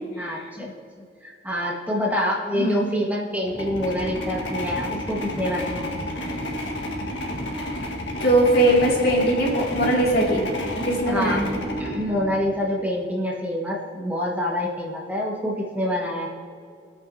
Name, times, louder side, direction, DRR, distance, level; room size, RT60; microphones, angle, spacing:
voice 1, 0.2-0.7 1.2-6.1 11.0-11.4 11.8-16.3, left 1 dB, 10° right, -3 dB, 1.6 m, -26 dB
voice 2, 2.5-3.1 8.2-10.4 10.7-11.5, right 1 dB, 60° left, -3 dB, 2.6 m, -20 dB
sound 1, 3.4-12.8, left 1 dB, 90° left, 1.6 m, -31 dB
23.5 x 9.0 x 2.8 m, 2.2 s
head